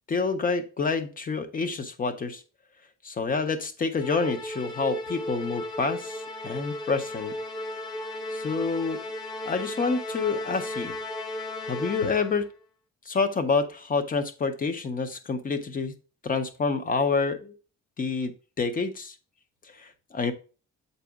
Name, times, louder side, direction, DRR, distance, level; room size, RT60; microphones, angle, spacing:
voice 1, 0.1-2.4 3.0-7.3 8.3-9.0 9.5-10.9 11.6-12.5 13.1-15.9 16.2-17.5 18.0-19.1 19.8-20.3, left 4 dB, 30° left, 10 dB, 0.6 m, -28 dB
Musical instrument, 4.0-12.5, left 1 dB, 80° left, 1.0 m, -35 dB
7.7 x 4.1 x 3.5 m, 0.36 s
cardioid pair, 170°, 30 cm